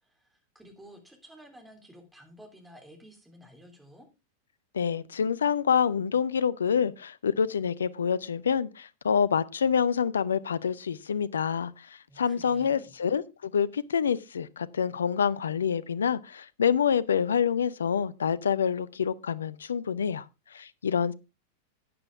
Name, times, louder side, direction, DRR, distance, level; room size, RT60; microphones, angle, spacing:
voice 1, 0.0-4.1 12.1-12.9, equal, 5° right, 3.3 m, -52 dB
voice 2, 4.7-20.3 20.5-21.1, left 7 dB, 70° left, 0.6 m, -27 dB
13.0 x 8.9 x 3.5 m
figure-of-eight pair, 90°, 0 cm